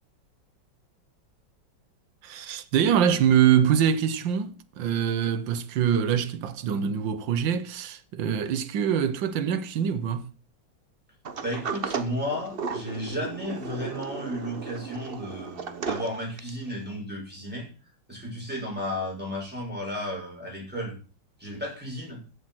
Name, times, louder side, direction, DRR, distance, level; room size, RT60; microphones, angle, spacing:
voice 1, 2.2-10.3, right 8 dB, 75° right, 1.6 m, -24 dB
Sliding door, 11.2-16.7, right 5 dB, 40° right, 0.9 m, -35 dB
voice 2, 11.4-17.7 18.1-21.0 21.4-22.2, equal, 5° right, 7.1 m, -33 dB
14.0 x 7.4 x 6.0 m
omnidirectional pair, 2.1 m